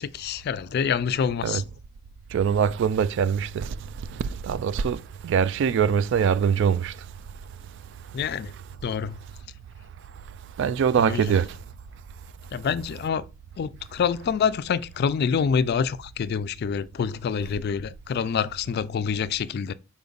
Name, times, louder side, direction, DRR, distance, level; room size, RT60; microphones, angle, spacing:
voice 1, 0.0-1.6 8.1-8.5 8.8-9.2 11.0-11.3 12.5-13.2 13.6-19.7, left 6 dB, 55° left, 0.3 m, -26 dB
voice 2, 2.3-3.7 4.4-6.9 10.6-11.5, right 7 dB, 65° right, 0.3 m, -23 dB
5.3 x 4.2 x 2.4 m
head